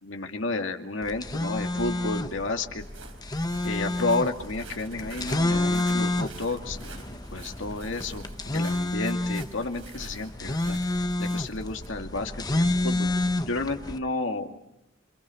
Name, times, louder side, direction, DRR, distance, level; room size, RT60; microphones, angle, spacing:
voice 1, 0.0-2.8 3.6-8.2 8.5-10.8 11.2-13.1 13.5-14.6, left 2 dB, 65° left, 4 dB, 2.3 m, -31 dB
sound 1, 1.0-14.0, left 2 dB, 20° left, 0.9 m, -29 dB
Walk footsteps, 2.8-11.9, right 5 dB, 75° right, 4.6 m, -49 dB
28.5 x 26.0 x 5.7 m, 0.86 s
head